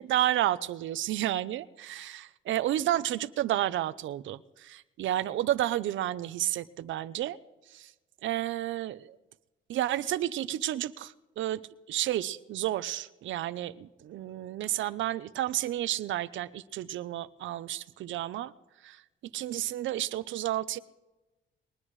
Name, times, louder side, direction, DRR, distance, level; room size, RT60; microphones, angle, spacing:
voice 1, 0.0-7.4 7.7-7.9 8.2-9.1 9.7-11.6 11.9-18.5 18.8-19.0 19.3-20.8, right 13 dB, 75° right, 15 dB, 0.7 m, -31 dB
22.0 x 20.0 x 3.2 m, 1.1 s
cardioid pair, 90°, 20 cm